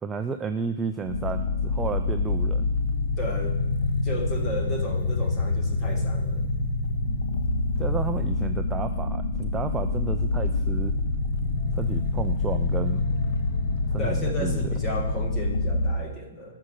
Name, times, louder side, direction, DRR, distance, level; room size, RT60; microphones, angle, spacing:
voice 1, 0.0-2.7 7.8-10.9 11.8-13.0 13.9-14.7, right 5 dB, 10° right, 7 dB, 0.4 m, -32 dB
sound 1, 1.1-15.9, left 3 dB, 45° left, 1.4 m, -26 dB
voice 2, 3.2-3.6 4.0-6.4 14.0-16.6, equal, 10° left, 2 dB, 1.5 m, -34 dB
13.0 x 6.4 x 7.6 m, 1.0 s
hypercardioid pair, 165°, 0 cm